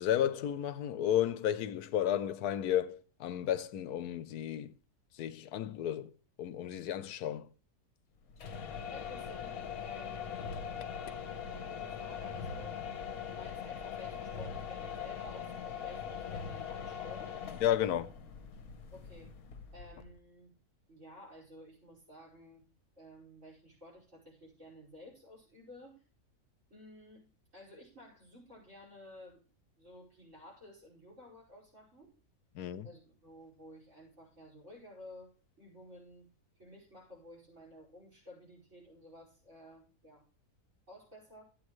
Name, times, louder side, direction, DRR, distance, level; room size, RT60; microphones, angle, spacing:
voice 1, 0.0-4.7 5.1-6.1 6.4-7.5 17.6-18.1 32.5-32.9, left 10 dB, 90° left, 1.2 m, -32 dB
sound 1, 8.3-20.2, left 7 dB, 75° left, 1.5 m, -41 dB
voice 2, 8.9-10.5 11.5-12.8 13.3-17.3 18.9-19.3 19.7-20.6 20.9-22.6 23.0-26.0 26.7-27.3 27.5-29.5 29.8-32.1 32.8-40.3 40.9-41.4, left 1 dB, 55° right, 5.6 m, -54 dB
14.0 x 8.6 x 3.1 m
omnidirectional pair, 1.6 m